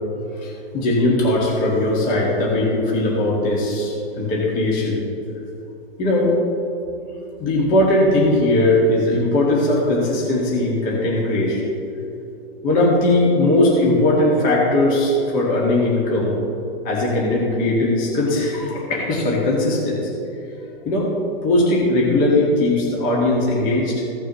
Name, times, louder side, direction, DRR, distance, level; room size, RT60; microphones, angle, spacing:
voice 1, 0.4-5.0 6.0-6.3 7.4-11.6 12.6-16.3 16.8-20.0 20.9-21.1 21.4-24.0, left 1 dB, 25° left, -4 dB, 2.0 m, -19 dB
16.0 x 6.7 x 3.1 m, 2.9 s
hypercardioid pair, 150°, 31 cm